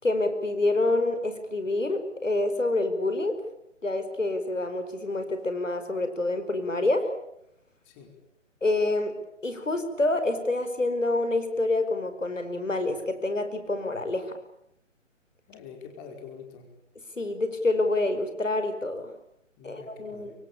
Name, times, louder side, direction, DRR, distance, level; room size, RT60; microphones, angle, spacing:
voice 1, 0.0-3.4 3.8-7.1 8.6-9.2 9.4-14.3 17.2-19.1 19.6-20.3, left 2 dB, 80° left, 9 dB, 5.1 m, -27 dB
voice 2, 15.5-16.7 19.6-20.3, left 6 dB, 20° left, 3 dB, 5.0 m, -45 dB
27.5 x 24.0 x 8.7 m, 0.77 s
figure-of-eight pair, 140°, 38 cm